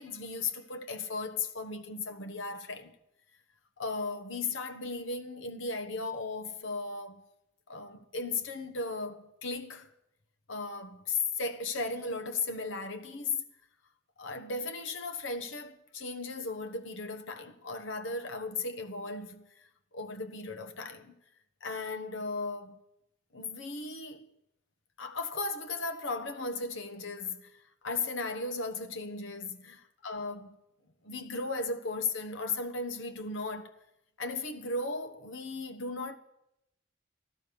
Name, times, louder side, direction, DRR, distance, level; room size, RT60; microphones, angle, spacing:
voice 1, 0.0-2.9 3.8-7.2 7.7-9.9 10.5-13.4 14.2-19.7 19.9-21.1 21.6-22.8 23.3-24.3 25.0-30.6 31.0-33.7 34.2-36.2, left 3 dB, 85° left, 1.2 m, -36 dB
14.5 x 11.5 x 6.9 m
head